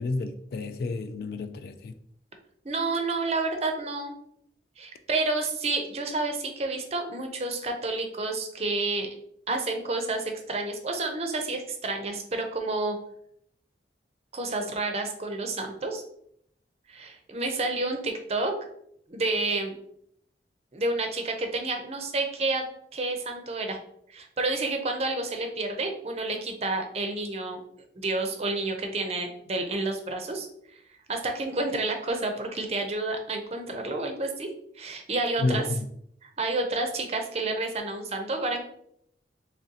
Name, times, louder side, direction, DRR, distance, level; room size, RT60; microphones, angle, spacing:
voice 1, 0.0-1.9 35.4-35.8, left 3 dB, 55° left, 0.3 m, -30 dB
voice 2, 2.6-4.1 4.8-9.1 9.5-13.0 14.3-16.0 16.9-18.5 19.1-19.8 20.7-22.7 22.9-23.8 24.1-27.6 28.0-30.8 31.1-34.5 34.7-35.7 36.2-38.6, right 2 dB, 35° right, 0.5 m, -30 dB
3.8 x 3.2 x 2.8 m
head